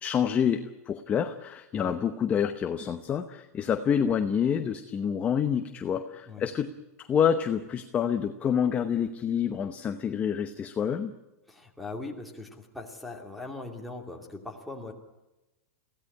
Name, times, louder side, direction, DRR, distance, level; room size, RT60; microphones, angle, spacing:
voice 1, 0.0-6.7 7.1-11.1, left 8 dB, 15° left, 8 dB, 0.8 m, -27 dB
voice 2, 11.5-14.9, left 3 dB, ahead, -1 dB, 2.6 m, -40 dB
22.5 x 16.5 x 9.8 m, 1.0 s
supercardioid pair, 160°, 8 cm